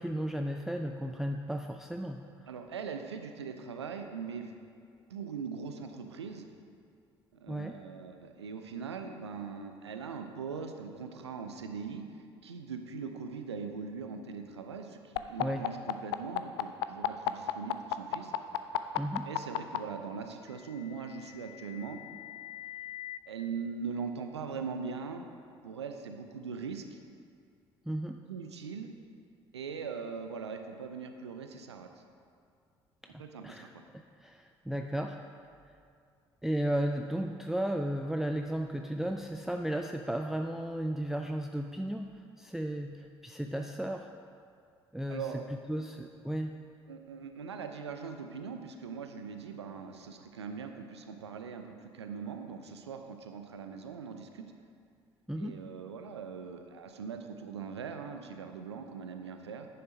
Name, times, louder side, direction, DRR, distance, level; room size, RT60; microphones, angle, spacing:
voice 1, 0.0-2.2 7.5-7.8 15.4-15.7 19.0-19.3 27.9-28.2 33.0-35.2 36.4-44.1 44.9-45.3 45.7-46.5 55.3-55.6, right 1 dB, 5° right, 4 dB, 0.5 m, -34 dB
voice 2, 2.5-4.6 5.1-6.5 7.3-18.3 19.2-22.0 23.3-25.3 25.6-27.0 28.3-28.9 29.5-31.9 33.2-33.8 45.1-45.5 46.9-54.4 55.4-59.7, right 5 dB, 85° right, 6 dB, 0.6 m, -41 dB
sound 1, 15.2-19.8 20.9-23.2, left 17 dB, 70° left, 0.4 m, -34 dB
9.9 x 7.0 x 5.0 m, 2.3 s
figure-of-eight pair, 50°, 14 cm